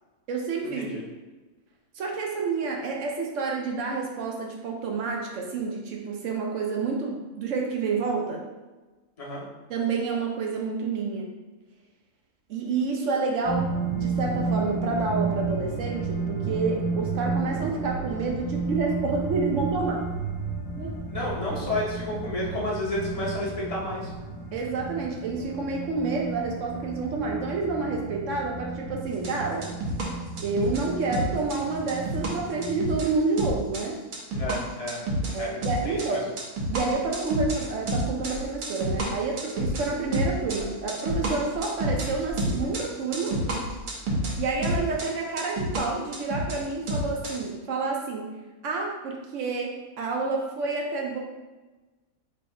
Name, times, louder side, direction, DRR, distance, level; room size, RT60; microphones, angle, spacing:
voice 1, 0.3-1.0 1.9-8.4 9.7-11.3 12.5-13.7 13.9-20.1 20.8-20.9 24.5-29.7 30.4-34.0 35.3-36.3 36.7-43.3 44.4-48.3 48.6-51.2, right 4 dB, 65° right, 0 dB, 0.8 m, -29 dB
sound 1, 13.4-32.9, right 4 dB, 60° left, 1.2 m, -32 dB
voice 2, 21.1-24.1 34.3-35.0 35.3-35.5 35.8-36.2, left 1 dB, 35° left, -5 dB, 0.7 m, -31 dB
sound 2, 29.1-30.1 30.4-30.8 31.1-32.3 32.6-33.1 33.4-33.9 34.1-45.1 45.4-45.8 46.1-47.4, right 1 dB, 85° right, 1.4 m, -29 dB
3.1 x 2.7 x 4.2 m, 1.2 s
omnidirectional pair, 1.6 m